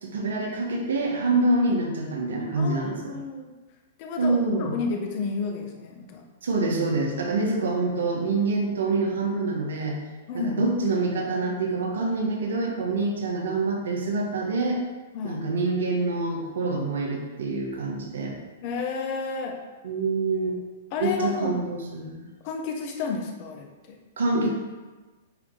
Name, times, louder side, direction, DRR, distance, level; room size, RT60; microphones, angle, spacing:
voice 1, 0.0-3.2 4.2-4.8 6.4-10.0 10.5-14.8 15.2-18.3 19.8-20.6 21.0-22.2 24.2-24.5, right 3 dB, 80° right, 0 dB, 1.4 m, -26 dB
voice 2, 2.6-3.5 4.0-6.2 7.1-7.3 10.3-10.7 15.1-15.4 18.6-19.6 20.9-21.6 22.4-24.0, left 5 dB, 45° left, 2 dB, 1.0 m, -31 dB
8.8 x 3.1 x 3.8 m, 1.2 s
hypercardioid pair, 130°, 0 cm